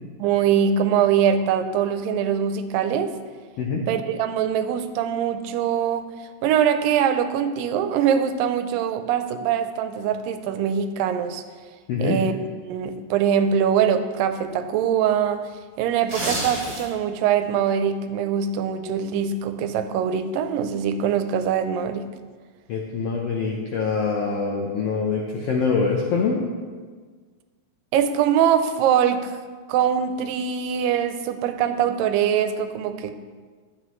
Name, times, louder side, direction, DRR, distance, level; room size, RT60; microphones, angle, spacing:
voice 1, 0.2-3.1 3.9-6.0 6.4-11.4 12.0-12.3 12.6-15.4 15.8-22.1 27.9-29.4 29.7-33.2, right 8 dB, 90° right, 9 dB, 2.3 m, -23 dB
sound 1, 15.9-17.1 17.5-17.7, right 1 dB, 40° right, 3.8 m, -29 dB
voice 2, 22.7-26.4, left 5 dB, 80° left, -1 dB, 1.4 m, -24 dB
12.0 x 7.9 x 3.1 m, 1.5 s
omnidirectional pair, 3.9 m